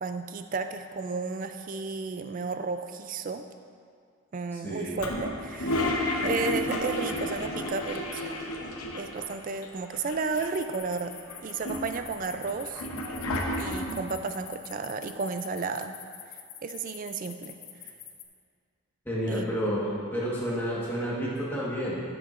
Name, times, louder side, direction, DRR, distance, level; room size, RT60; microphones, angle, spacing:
voice 1, 0.0-3.4 4.3-5.9 6.2-8.4 8.9-11.1 11.4-12.8 13.6-16.0 16.6-17.6 19.3-19.6, right 4 dB, 35° right, 8 dB, 0.3 m, -33 dB
voice 2, 4.5-5.0 19.0-22.0, equal, 10° left, -7 dB, 1.3 m, -30 dB
Toilet flush, 5.0-9.3 9.6-9.7 9.9-10.8 11.3-14.1, left 1 dB, 85° left, 0.8 m, -31 dB
sound 1, 10.2-18.2, left 9 dB, 40° left, 0.6 m, -45 dB
11.5 x 7.0 x 2.5 m, 2.2 s
head